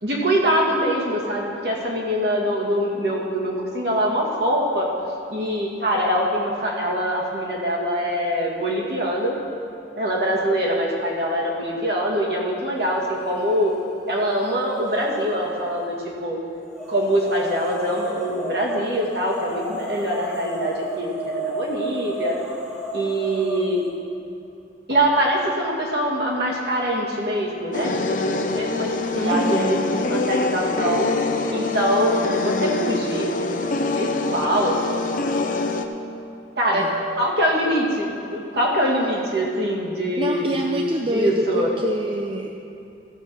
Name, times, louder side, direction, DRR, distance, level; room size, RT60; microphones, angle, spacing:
voice 1, 0.0-4.9 5.3-9.4 10.0-13.7 14.1-16.4 16.9-22.3 22.9-23.8 24.9-29.8 30.1-31.1 31.5-33.3 33.8-34.7 36.6-36.9 37.2-41.7, equal, 60° right, -3 dB, 2.1 m, -23 dB
sound 1, 13.2-13.8 14.1-15.9 16.7-23.9, right 2 dB, 5° right, 1.3 m, -33 dB
sound 2, 27.7-35.9, left 3 dB, 45° left, 0.6 m, -25 dB
voice 2, 29.1-29.9 36.7-37.0 40.2-42.5, right 1 dB, 30° right, 2 dB, 0.5 m, -26 dB
14.5 x 5.7 x 7.2 m, 2.7 s
head